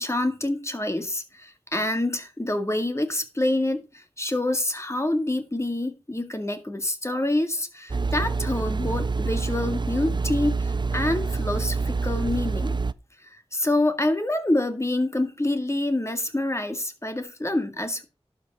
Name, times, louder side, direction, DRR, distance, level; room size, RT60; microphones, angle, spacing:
voice 1, 0.0-12.8 13.2-18.0, left 1 dB, 25° left, 1.9 m, -27 dB
sound 1, 7.9-12.9, right 4 dB, 45° right, 0.4 m, -27 dB
11.5 x 6.0 x 5.2 m
wide cardioid pair, 50°, 11 cm